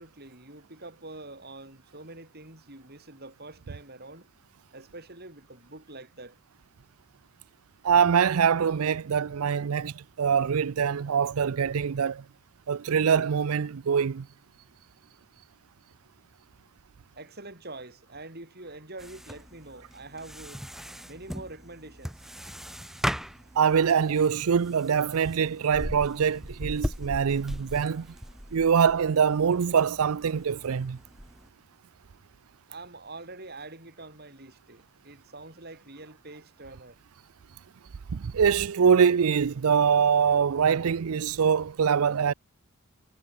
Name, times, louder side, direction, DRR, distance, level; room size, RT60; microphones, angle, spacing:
voice 1, 0.0-4.3 4.7-6.4 17.2-20.6 21.1-22.3 32.7-37.0, right 2 dB, 45° right, 7.5 m, -45 dB
voice 2, 7.8-12.2 12.7-14.3 23.6-28.1 28.5-31.0 38.1-42.3, right 7 dB, 80° right, 0.5 m, -24 dB
sound 1, 19.0-31.5, equal, ahead, 2.3 m, -38 dB
head